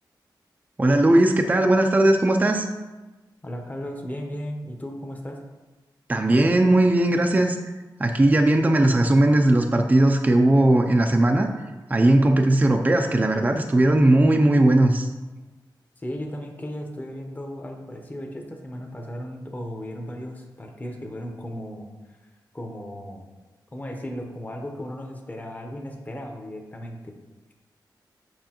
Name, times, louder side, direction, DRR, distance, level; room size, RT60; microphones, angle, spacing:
voice 1, 0.8-2.7 6.1-7.6 8.0-11.5 11.9-15.1, right 1 dB, 20° right, 4 dB, 0.4 m, -18 dB
voice 2, 3.4-5.4 16.0-21.9 22.5-23.3 23.7-27.1, equal, 20° left, 2 dB, 0.9 m, -35 dB
7.6 x 5.5 x 2.9 m, 1.2 s
wide cardioid pair, 125°, 8 cm